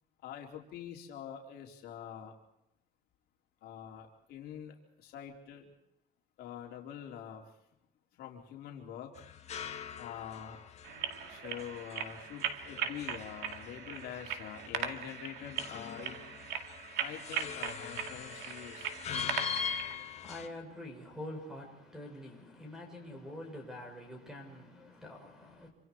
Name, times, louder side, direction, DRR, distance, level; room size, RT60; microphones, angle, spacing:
voice 1, 0.2-2.3 3.6-5.7 6.4-7.4 8.2-9.1 10.0-10.6 11.3-16.2 17.0-19.3, left 9 dB, 60° left, 4.1 m, -45 dB
sound 1, 9.2-20.5, left 7 dB, 35° left, 1.7 m, -43 dB
sound 2, 10.8-20.0, right 9 dB, 70° right, 2.2 m, -39 dB
voice 2, 19.9-25.7, left 1 dB, 5° right, 6.3 m, -46 dB
27.5 x 26.5 x 4.7 m
cardioid pair, 165°, 18 cm